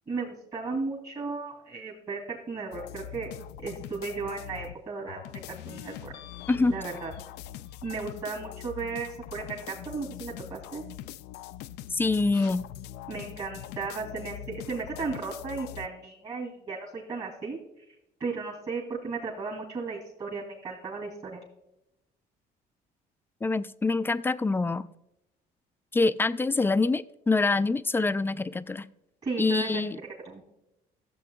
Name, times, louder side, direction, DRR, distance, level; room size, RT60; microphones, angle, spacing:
voice 1, 0.1-3.3 3.6-6.2 6.7-7.1 7.8-10.8 13.1-17.6 18.2-21.4 29.2-29.8 30.2-30.4, right 4 dB, 40° right, -3 dB, 2.5 m, -35 dB
sound 1, 2.7-4.8 5.1-15.9, left 11 dB, 85° left, 0.4 m, -42 dB
voice 2, 11.9-12.6 23.4-24.9 25.9-28.9 29.4-30.0, left 3 dB, 15° left, 14 dB, 0.3 m, -25 dB
14.0 x 7.6 x 2.3 m, 0.86 s
cardioid pair, 110°, 17 cm